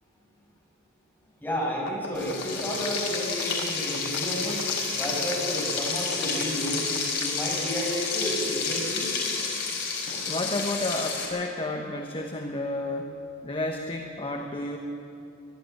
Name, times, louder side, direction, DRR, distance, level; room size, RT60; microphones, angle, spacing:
voice 1, 1.4-4.6 5.0-6.9 7.2-9.1, equal, 10° left, -3 dB, 6.2 m, -31 dB
sound 1, 1.8-7.3, left 5 dB, 80° left, 1.2 m, -37 dB
Frying (food), 2.1-11.3, left 4 dB, 60° left, 4.9 m, -30 dB
voice 2, 10.2-14.8, left 2 dB, 25° left, 3 dB, 1.1 m, -31 dB
23.0 x 12.0 x 9.3 m, 2.7 s
head